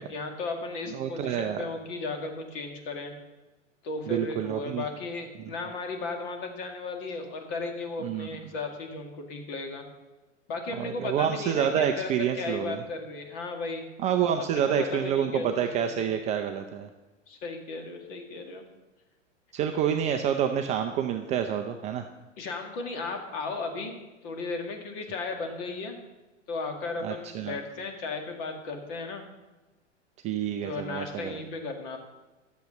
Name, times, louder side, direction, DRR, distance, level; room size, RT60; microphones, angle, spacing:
voice 1, 0.0-3.1 3.8-9.8 10.5-13.8 14.4-15.6 16.0-16.1 17.3-18.6 22.4-23.9 24.2-26.0 26.5-29.2 30.6-32.0, left 3 dB, 45° left, 3 dB, 2.1 m, -35 dB
voice 2, 0.9-1.6 4.1-4.8 8.0-8.3 10.7-12.8 14.0-16.9 19.5-22.0 27.0-27.6 30.2-31.3, right 9 dB, 20° right, 6 dB, 0.4 m, -28 dB
11.5 x 7.2 x 6.6 m, 1.1 s
figure-of-eight pair, 100°, 38 cm